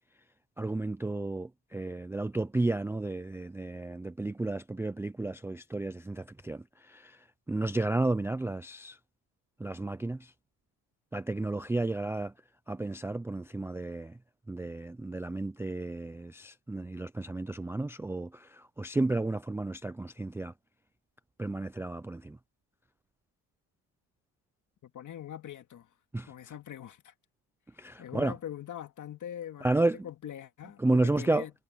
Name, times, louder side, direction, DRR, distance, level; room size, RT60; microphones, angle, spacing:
voice 1, 0.6-9.0 9.6-10.3 11.1-12.3 12.7-14.2 14.5-20.5 21.4-22.4 26.1-26.3 27.8-28.3 29.6-30.0 30.8-31.4, right 2 dB, 5° right, 0.4 m, -32 dB
voice 2, 24.8-25.9 26.2-27.1 28.0-31.5, left 10 dB, 45° left, 2.3 m, -42 dB
cardioid pair, 110°, 42 cm